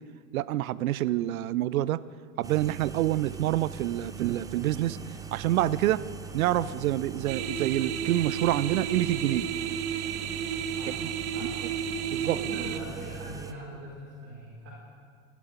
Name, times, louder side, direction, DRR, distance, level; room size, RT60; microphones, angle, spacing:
voice 1, 0.3-2.0 2.4-5.0 5.3-6.0 6.3-9.5 12.1-12.4, right 14 dB, 70° right, 18 dB, 0.6 m, -27 dB
sound 1, 2.4-13.5, right 7 dB, 10° right, 0.6 m, -41 dB
sound 2, 7.3-12.8, right 8 dB, 50° right, 1.0 m, -32 dB
voice 2, 12.2-14.7, right 1 dB, 35° right, -7 dB, 4.9 m, -41 dB
16.0 x 12.0 x 5.2 m, 2.1 s
hypercardioid pair, 95°, 43 cm